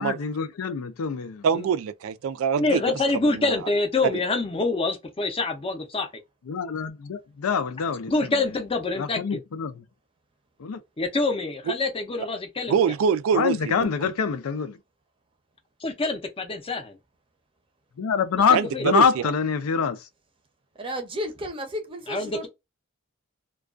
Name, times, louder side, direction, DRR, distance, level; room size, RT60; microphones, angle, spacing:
voice 1, 0.0-1.4 6.5-8.3 9.0-9.8 10.6-10.8 13.3-14.8 18.0-20.0, left 6 dB, 85° left, 0.4 m, -25 dB
voice 2, 1.4-2.8 3.2-3.6 4.1-4.2 12.7-14.1 18.5-19.2, right 7 dB, 70° right, 0.3 m, -25 dB
voice 3, 2.6-6.1 8.1-9.4 11.0-12.8 15.8-17.0 18.5-18.9 22.1-22.5, left 3 dB, 25° left, 0.5 m, -26 dB
voice 4, 20.7-22.5, equal, 25° right, 0.6 m, -33 dB
2.3 x 2.2 x 2.4 m
head